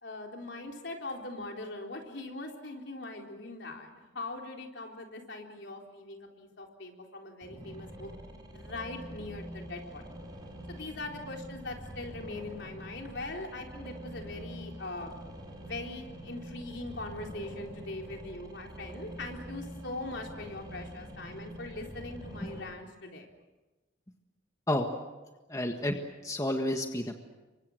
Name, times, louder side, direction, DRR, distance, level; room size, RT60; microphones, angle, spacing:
voice 1, 0.0-8.1 8.5-10.0 10.7-15.1 15.6-23.3, left 2 dB, 70° left, 1 dB, 3.9 m, -41 dB
sound 1, 7.4-22.6, equal, 20° right, 5.0 m, -45 dB
voice 2, 25.5-26.0 26.2-27.2, left 1 dB, 15° left, 4 dB, 1.6 m, -30 dB
29.0 x 24.5 x 6.5 m, 1.1 s
head